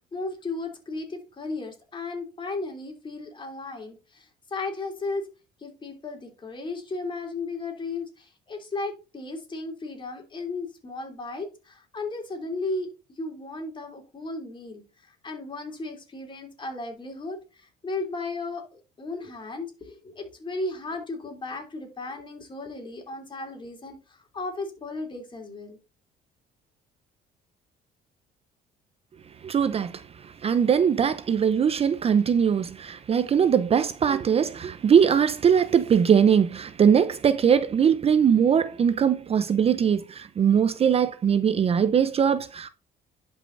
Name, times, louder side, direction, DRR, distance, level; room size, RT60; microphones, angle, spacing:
voice 1, 0.1-5.3 5.6-12.9 13.2-25.8, left 3 dB, 30° left, 3.2 m, -35 dB
voice 2, 29.4-42.7, right 7 dB, 35° right, 0.6 m, -21 dB
11.0 x 5.5 x 2.6 m
cardioid pair, 110°, 17 cm